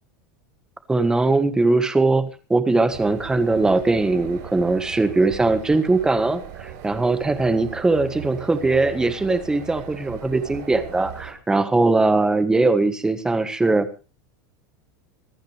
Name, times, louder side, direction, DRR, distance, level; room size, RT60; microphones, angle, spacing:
voice 1, 0.9-13.9, right 3 dB, 5° right, 10 dB, 1.4 m, -20 dB
sound 1, 2.9-11.3, right 10 dB, 65° right, 7.2 m, -38 dB
25.5 x 9.6 x 3.3 m, 0.33 s
supercardioid pair, 165°, 10 cm